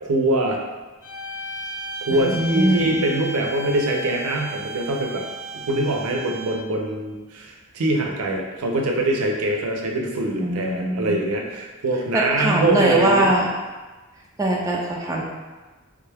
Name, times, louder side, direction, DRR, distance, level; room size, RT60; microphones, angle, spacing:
voice 1, 0.0-0.6 2.0-5.2 5.5-13.3, right 1 dB, 85° right, 1 dB, 0.5 m, -23 dB
sound 1, 1.0-6.8, right 1 dB, 40° left, 0.8 m, -34 dB
voice 2, 2.1-3.0 10.4-11.2 12.1-13.5 14.4-15.2, right 1 dB, 15° right, -2 dB, 0.4 m, -21 dB
3.6 x 2.2 x 3.4 m, 1.2 s
head